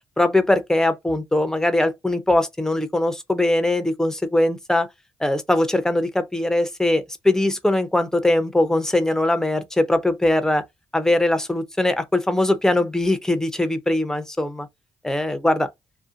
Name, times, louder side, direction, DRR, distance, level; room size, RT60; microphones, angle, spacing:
voice 1, 0.2-4.9 5.2-10.6 10.9-14.7 15.0-15.7, left 1 dB, 5° left, 0.6 m, -21 dB
2.6 x 2.1 x 2.5 m
cardioid pair, 70°, 11 cm